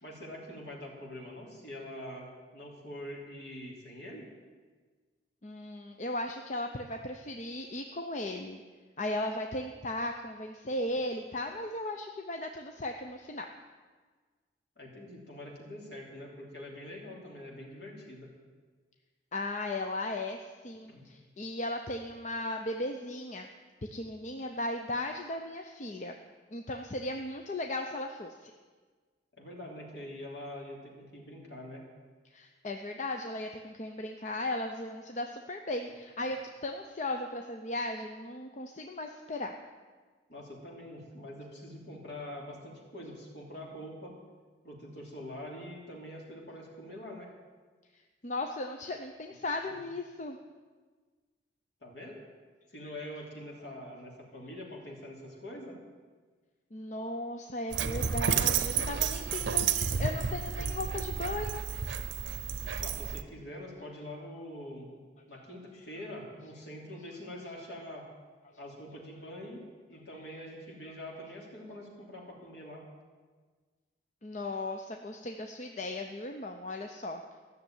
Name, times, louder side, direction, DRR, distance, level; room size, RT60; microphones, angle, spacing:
voice 1, 0.0-4.3 14.8-18.3 20.9-21.0 29.4-31.8 40.3-44.1 44.6-47.3 49.7-49.8 51.8-52.2 52.7-55.7 59.8-59.9 62.8-65.0 65.3-68.0 68.6-69.6 69.9-72.8, left 1 dB, 65° left, -2 dB, 3.3 m, -44 dB
voice 2, 5.4-8.6 9.0-13.5 19.3-23.5 23.9-26.2 26.5-28.5 32.3-39.5 48.2-50.4 52.8-52.9 56.7-61.6 70.9-71.0 74.2-77.2, left 2 dB, 40° left, 4 dB, 0.7 m, -36 dB
Dog, 57.7-63.2, right 7 dB, 90° right, 0.6 m, -31 dB
14.0 x 6.7 x 9.1 m, 1.4 s
head